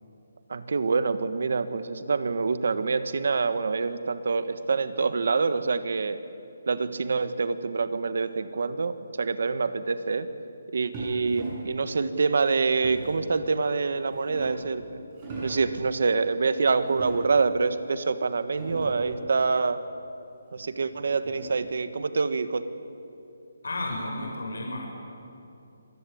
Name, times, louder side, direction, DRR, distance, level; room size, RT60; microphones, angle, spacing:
voice 1, 0.5-6.2 6.7-10.3 10.7-15.0 15.4-19.8 20.5-22.6, right 4 dB, 55° right, 12 dB, 1.4 m, -26 dB
sound 1, 10.9-11.8 12.8-13.3 13.9-14.7 15.1-15.8 16.8-17.5 18.1-18.2 18.5-19.2 20.6-21.7, right 2 dB, 20° right, 7.7 m, -38 dB
voice 2, 23.6-24.9, left 2 dB, 85° left, 0 dB, 6.1 m, -32 dB
26.0 x 19.5 x 8.6 m, 2.7 s
hypercardioid pair, 175°, 0 cm